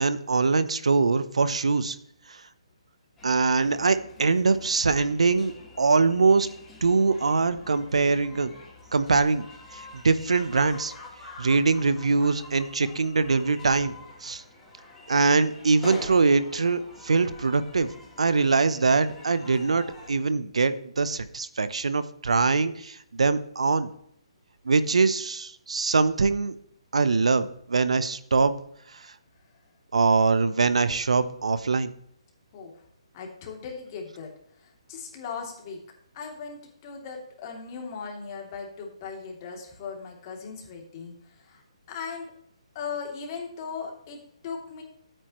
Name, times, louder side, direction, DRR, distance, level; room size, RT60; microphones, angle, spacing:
voice 1, 0.0-2.0 2.3-2.4 3.2-6.5 6.8-8.5 8.9-9.5 9.7-10.9 11.4-13.9 14.2-14.4 15.1-17.9 18.2-23.9 24.6-26.5 26.9-28.5 29.0-29.1 29.9-31.9, right 4 dB, 75° right, 14 dB, 0.7 m, -23 dB
sound 1, 3.2-20.1, left 2 dB, 10° left, 3.4 m, -46 dB
voice 2, 33.1-34.3 34.6-35.8 36.1-41.6 41.9-42.3 42.7-44.8, left 5 dB, 35° left, 0 dB, 2.8 m, -38 dB
12.5 x 9.0 x 3.1 m, 0.70 s
figure-of-eight pair, 145°, 3 cm